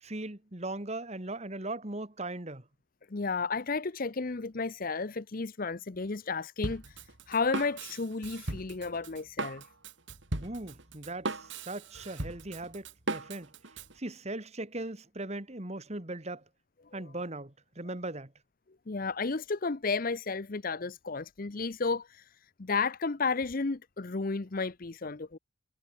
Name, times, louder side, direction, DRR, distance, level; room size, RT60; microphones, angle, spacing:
voice 1, 0.0-2.6 10.4-13.5 14.0-16.4 16.9-18.3, right 2 dB, 30° right, 1.8 m, -39 dB
voice 2, 3.1-9.6 16.9-17.0 18.9-25.4, left 4 dB, 40° left, 0.7 m, -33 dB
Drum kit, 6.6-13.9, right 2 dB, 60° right, 2.6 m, -38 dB
head